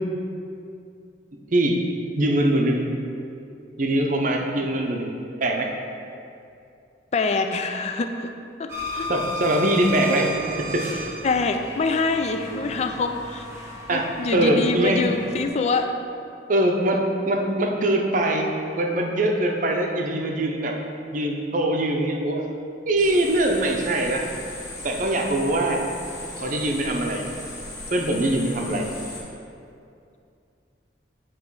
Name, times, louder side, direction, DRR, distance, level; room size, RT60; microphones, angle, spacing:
voice 1, 2.2-2.9 3.8-5.1 5.4-5.7 9.1-10.3 10.6-10.9 13.9-15.0 16.5-18.5 18.8-20.7 21.1-22.5 22.9-24.3 24.8-25.8 26.4-27.3 27.9-28.9, right 1 dB, 45° right, 2 dB, 0.6 m, -22 dB
voice 2, 7.1-8.3 8.6-9.1 11.2-13.5 13.9-15.9, left 3 dB, 35° left, 6 dB, 0.3 m, -25 dB
sound 1, 8.7-15.5, equal, 15° right, 0.9 m, -35 dB
sound 2, 23.0-29.2, left 2 dB, 15° left, 1.0 m, -37 dB
8.2 x 3.1 x 4.6 m, 2.5 s
head